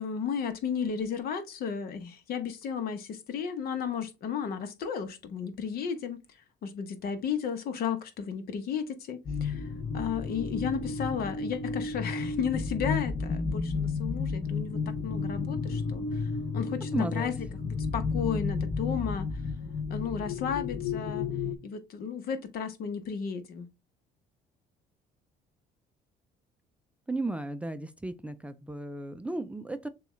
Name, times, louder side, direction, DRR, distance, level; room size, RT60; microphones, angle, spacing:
voice 1, 0.0-6.2 6.6-9.7 9.9-16.3 16.5-17.3 17.6-19.3 19.9-21.3 21.6-23.7, left 7 dB, 65° left, 1.0 m, -33 dB
sound 1, 9.3-21.6, left 4 dB, 30° left, 0.7 m, -32 dB
voice 2, 16.9-17.3 27.1-29.9, right 2 dB, 5° right, 0.4 m, -34 dB
6.8 x 2.4 x 3.1 m
cardioid pair, 110°, 17 cm